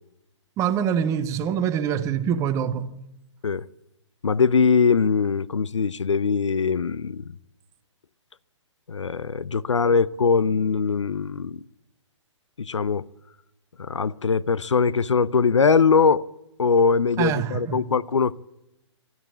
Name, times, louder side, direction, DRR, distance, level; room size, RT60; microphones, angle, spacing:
voice 1, 0.6-3.0 17.2-17.8, right 8 dB, 20° right, 1.1 m, -25 dB
voice 2, 4.2-7.3 8.9-11.6 12.6-13.0 13.8-16.2 16.6-18.3, left 5 dB, 75° left, 0.7 m, -21 dB
26.5 x 12.5 x 8.8 m
figure-of-eight pair, 130°, 16 cm